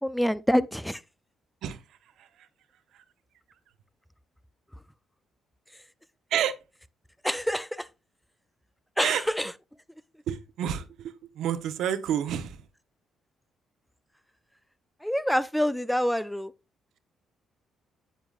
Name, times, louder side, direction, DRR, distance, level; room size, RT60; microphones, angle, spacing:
voice 1, 0.0-1.0 7.2-7.9 9.0-9.5 15.0-16.5, equal, 5° left, 0.4 m, -26 dB
voice 2, 10.3-12.6, right 9 dB, 80° right, 1.0 m, -29 dB
9.3 x 7.9 x 2.5 m
cardioid pair, 90°, 0 cm